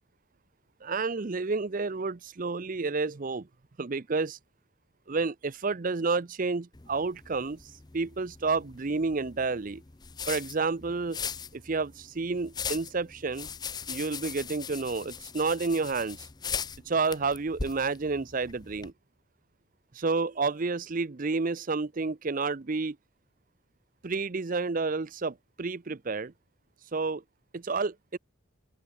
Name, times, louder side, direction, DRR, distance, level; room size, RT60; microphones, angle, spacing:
voice 1, 0.8-3.5 3.8-4.4 5.1-7.6 7.9-9.8 10.3-11.2 11.5-13.5 13.9-16.3 16.9-18.9 19.9-23.0 24.0-26.3 26.9-27.2 27.5-28.2, right 4 dB, 40° right, 0.6 m, -30 dB
sound 1, 6.7-18.9, left 6 dB, 20° left, 0.5 m, -40 dB
open air
head